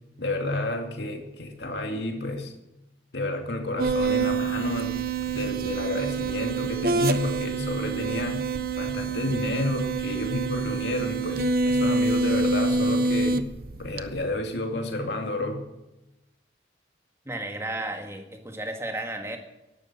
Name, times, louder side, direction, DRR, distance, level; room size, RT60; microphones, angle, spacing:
voice 1, 0.2-2.5 3.1-5.0 5.3-8.5 8.8-13.5 13.8-15.6, left 2 dB, 65° left, 4 dB, 2.4 m, -30 dB
sound 1, 3.8-14.2, right 3 dB, 50° right, 0.7 m, -26 dB
voice 2, 17.3-19.4, right 1 dB, 15° right, 4 dB, 1.7 m, -33 dB
12.5 x 11.5 x 7.5 m, 0.95 s
head